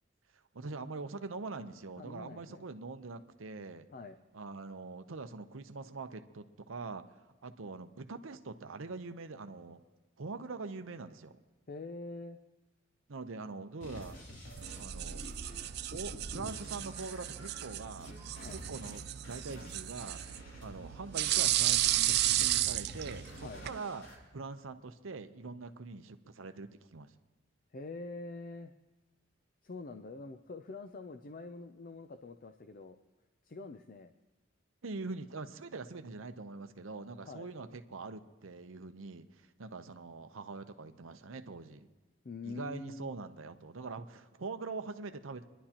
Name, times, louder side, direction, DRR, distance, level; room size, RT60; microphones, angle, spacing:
voice 1, 0.5-3.9 4.3-7.0 7.4-9.8 10.2-11.4 13.1-14.2 14.8-15.3 15.9-18.1 18.5-20.2 20.6-24.1 24.3-27.1 34.8-41.9 42.4-45.4, right 3 dB, 90° right, 9 dB, 0.7 m, -43 dB
voice 2, 2.0-2.6 3.9-4.2 11.7-12.4 18.4-18.6 23.4-23.6 27.7-28.7 29.6-33.0 33.5-34.1 37.3-37.5 42.2-43.1, left 3 dB, 45° left, 8 dB, 0.5 m, -45 dB
sound 1, 13.8-24.2, equal, 70° left, 3.2 m, -48 dB
sound 2, 14.6-23.8, right 14 dB, 55° right, 0.3 m, -34 dB
28.0 x 11.0 x 2.9 m, 1.2 s
head